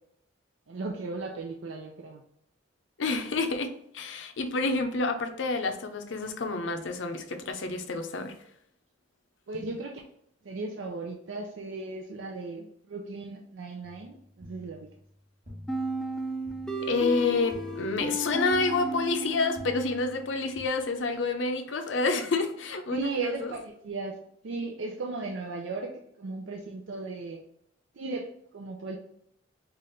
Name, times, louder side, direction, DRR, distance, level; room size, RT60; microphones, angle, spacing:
voice 1, 0.7-2.2 9.5-10.0 10.4-14.9 22.9-27.4 27.9-29.0, right 3 dB, 70° right, 0.5 m, -36 dB
voice 2, 3.0-8.3 16.8-23.5, left 3 dB, 70° left, 0.6 m, -29 dB
sound 1, 13.8-20.7, left 1 dB, 40° right, 1.1 m, -49 dB
sound 2, 15.7-20.3, right 1 dB, 5° left, 0.3 m, -34 dB
4.7 x 2.5 x 3.0 m
head